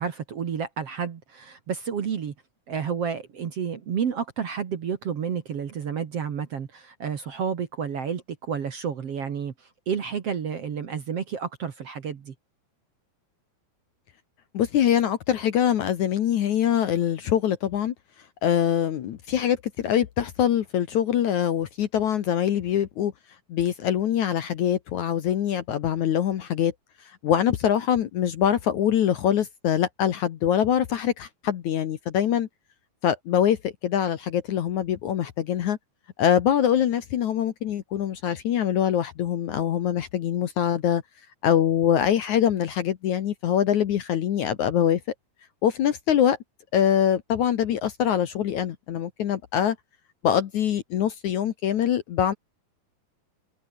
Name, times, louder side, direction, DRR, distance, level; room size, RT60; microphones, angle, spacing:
voice 1, 0.0-2.3 2.7-12.3, right 7 dB, 50° right, 2.2 m, -30 dB
voice 2, 14.5-17.9 18.4-23.1 23.5-26.7 27.2-32.5 33.0-35.8 36.2-41.0 41.4-45.0 45.6-46.4 46.7-49.8 50.2-52.3, left 10 dB, 60° left, 2.2 m, -24 dB
omnidirectional pair, 4.5 m